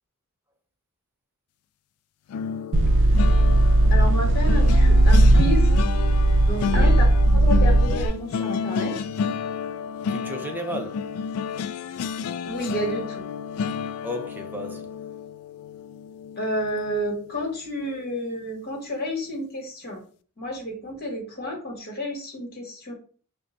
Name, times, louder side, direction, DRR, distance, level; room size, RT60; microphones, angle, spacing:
sound 1, 2.3-17.4 17.8-18.1 18.4-18.6, left 7 dB, 80° left, 0.3 m, -31 dB
sound 2, 2.7-8.1, right 1 dB, 60° right, 0.4 m, -17 dB
voice 1, 3.9-5.7 6.4-7.1 7.3-8.9 12.4-13.2 16.4-20.0 20.4-22.9, equal, 45° left, 1.5 m, -30 dB
voice 2, 6.6-7.0 10.1-11.1 14.0-14.9, equal, 10° right, 0.6 m, -34 dB
5.0 x 2.2 x 3.9 m
head